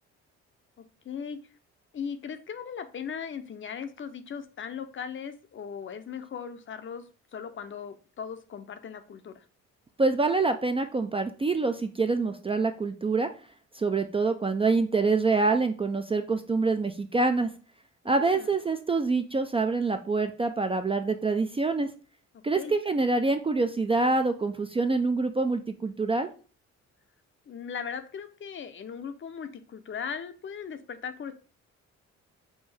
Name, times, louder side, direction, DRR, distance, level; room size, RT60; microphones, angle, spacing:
voice 1, 1.0-1.4 1.9-9.4 18.0-18.5 22.6-22.7 27.5-31.3, left 7 dB, 40° left, 9 dB, 0.6 m, -38 dB
voice 2, 10.0-13.3 13.7-17.5 18.1-21.9 22.4-26.3, right 3 dB, 20° right, 7 dB, 0.3 m, -26 dB
5.4 x 2.6 x 3.3 m, 0.39 s
cardioid pair, 90°, 30 cm